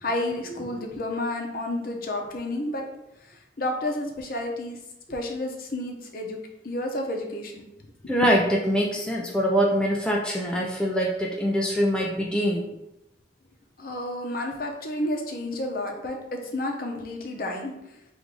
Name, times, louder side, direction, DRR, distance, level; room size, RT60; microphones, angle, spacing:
voice 1, 0.0-2.8 3.6-4.8 5.1-6.4 6.6-7.7 13.8-17.7, left 1 dB, 50° left, 2 dB, 0.7 m, -30 dB
voice 2, 8.1-12.7, equal, 5° left, -2 dB, 0.3 m, -24 dB
3.7 x 2.6 x 4.6 m, 0.86 s
head